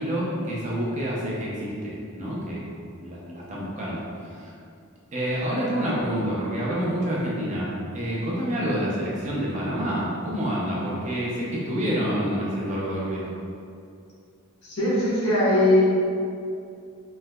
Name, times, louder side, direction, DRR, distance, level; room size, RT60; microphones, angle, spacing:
voice 1, 0.0-4.5 5.1-13.4, equal, 35° right, -6 dB, 0.6 m, -28 dB
voice 2, 14.6-15.8, left 1 dB, 90° left, -9 dB, 1.1 m, -20 dB
3.2 x 2.9 x 2.2 m, 2.4 s
head